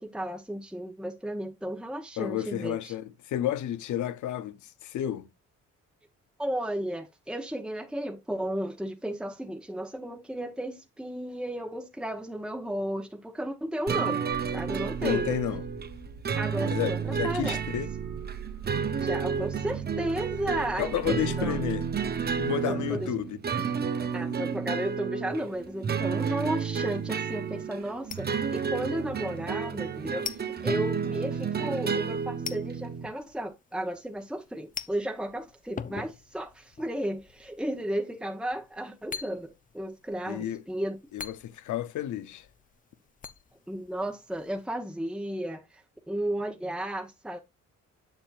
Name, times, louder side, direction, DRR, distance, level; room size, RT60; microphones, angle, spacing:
voice 1, 0.0-2.9 6.4-14.2 14.5-15.3 16.3-17.6 19.0-21.6 22.7-23.1 24.1-41.0 43.7-47.4, right 1 dB, 5° right, 1.0 m, -34 dB
voice 2, 2.2-5.3 15.0-15.6 16.7-17.9 20.8-21.9 22.2-23.4 23.8-24.3 40.3-40.6 41.1-42.5, left 12 dB, 75° left, 0.8 m, -32 dB
sound 1, 13.9-33.1, right 6 dB, 30° right, 0.8 m, -31 dB
sound 2, 14.3-22.5, right 7 dB, 80° right, 2.1 m, -43 dB
sound 3, 25.3-44.7, left 6 dB, 25° left, 0.6 m, -46 dB
7.5 x 7.2 x 2.5 m
cardioid pair, 90°, 30 cm